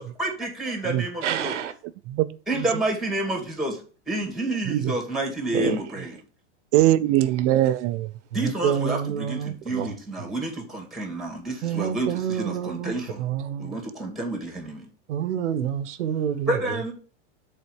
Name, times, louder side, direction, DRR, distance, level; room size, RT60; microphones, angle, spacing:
voice 1, 0.0-1.5 2.5-3.8 4.1-6.2 8.3-13.2 13.6-14.9 16.5-16.9, right 1 dB, ahead, 2.3 m, -29 dB
voice 2, 1.2-1.7 5.5-5.8 8.3-9.9 10.2-10.3 11.6-13.8 15.1-16.5, right 9 dB, 80° right, 1.1 m, -28 dB
voice 3, 4.6-5.0 6.7-8.1, right 14 dB, 45° right, 0.6 m, -21 dB
6.6 x 4.2 x 6.5 m
supercardioid pair, 125°, 35 cm